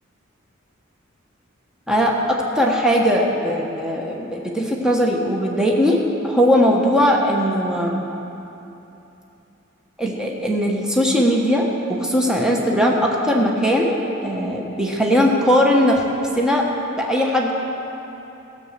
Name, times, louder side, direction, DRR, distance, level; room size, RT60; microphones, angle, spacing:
voice 1, 1.9-8.0 10.0-14.0 14.2-16.0 16.3-16.6 17.0-17.5, equal, 5° right, -2 dB, 1.1 m, -19 dB
15.5 x 7.2 x 6.5 m, 2.9 s
head